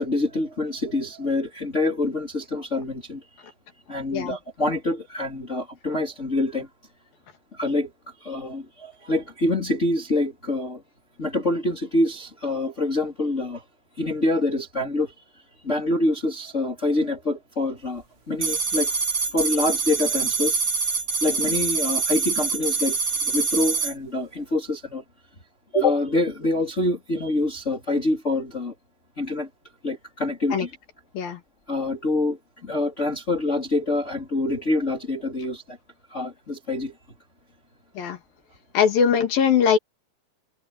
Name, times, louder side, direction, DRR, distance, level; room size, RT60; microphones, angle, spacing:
voice 1, 0.0-3.3 3.9-6.7 7.5-7.9 8.2-10.8 11.2-13.6 14.0-18.9 19.3-20.6 21.2-23.0 23.3-25.0 25.7-28.7 29.2-29.5 29.8-30.8 31.2-31.3 31.7-35.8 36.1-36.9, left 2 dB, 20° left, 4.0 m, -26 dB
sound 1, 18.4-23.9, right 4 dB, 65° right, 0.7 m, -25 dB
voice 2, 38.7-39.8, left 7 dB, 75° left, 4.3 m, -20 dB
omnidirectional pair, 4.1 m